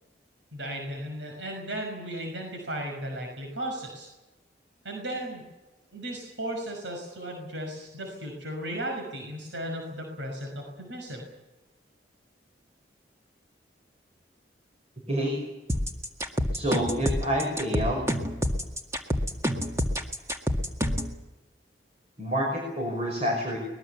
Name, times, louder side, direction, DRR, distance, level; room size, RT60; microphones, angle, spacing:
voice 1, 0.5-4.1 4.8-5.4 5.9-11.2, right 1 dB, 85° right, 2 dB, 5.9 m, -35 dB
voice 2, 15.1-15.4 16.5-18.1 22.2-23.6, equal, 35° right, 0 dB, 5.7 m, -28 dB
sound 1, 15.7-21.1, equal, 15° right, 2.0 m, -27 dB
23.0 x 21.0 x 7.2 m, 1.1 s
head